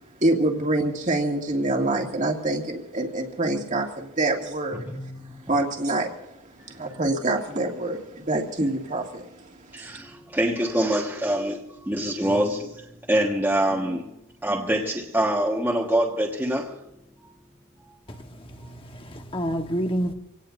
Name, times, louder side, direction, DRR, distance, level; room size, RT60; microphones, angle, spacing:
voice 1, 0.2-4.9 5.2-6.1 6.8-9.3, right 2 dB, 35° right, 2.2 m, -26 dB
voice 2, 4.9-5.5 6.8-7.0 9.7-16.8 17.2-17.3 18.6-18.7, right 1 dB, 10° right, 1.5 m, -25 dB
voice 3, 18.1-20.1, equal, 25° left, 1.3 m, -29 dB
26.5 x 18.0 x 2.6 m
head